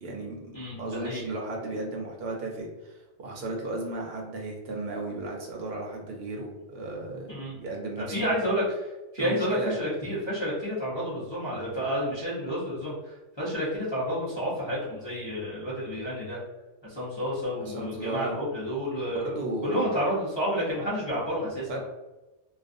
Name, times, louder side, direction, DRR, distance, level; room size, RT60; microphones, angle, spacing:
voice 1, 0.0-0.4 0.8-7.3 7.6-8.5 9.2-9.8 17.6-18.4 19.0-20.0 21.7-21.8, right 2 dB, 65° right, 0 dB, 0.8 m, -34 dB
voice 2, 0.5-1.3 7.3-7.5 8.0-8.6 9.1-16.4 16.8-19.4 19.6-21.8, equal, 30° left, -11 dB, 0.6 m, -30 dB
2.4 x 2.3 x 2.5 m, 1.1 s
omnidirectional pair, 1.2 m